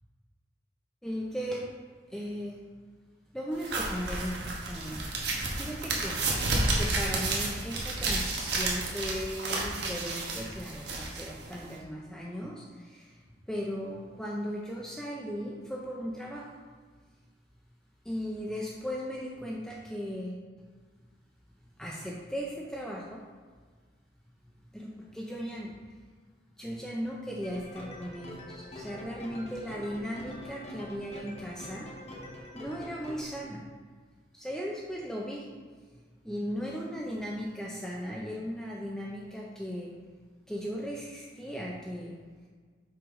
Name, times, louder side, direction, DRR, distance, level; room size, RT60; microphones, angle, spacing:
voice 1, 1.0-1.7 2.1-2.6 3.3-13.2 13.5-16.5 18.0-20.5 21.8-23.2 24.7-25.7 26.6-31.9 32.5-33.7 34.3-35.5 36.2-39.9 40.5-42.2, equal, 5° left, -3 dB, 0.5 m, -37 dB
sound 1, 3.6-11.8, right 2 dB, 70° right, 1.2 m, -31 dB
sound 2, 27.4-33.2, left 1 dB, 35° left, 1.0 m, -45 dB
5.7 x 5.6 x 3.7 m, 1.5 s
head